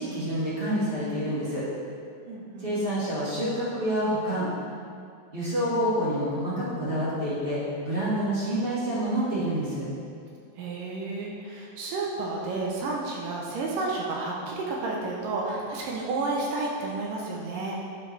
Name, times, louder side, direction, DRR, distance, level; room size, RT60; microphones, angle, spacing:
voice 1, 0.0-1.6 2.6-4.5 5.3-9.9, equal, 35° right, -9 dB, 0.8 m, -28 dB
voice 2, 2.3-2.7 10.6-17.8, right 3 dB, 75° right, -2 dB, 2.2 m, -31 dB
9.6 x 5.5 x 3.3 m, 2.3 s
omnidirectional pair, 4.2 m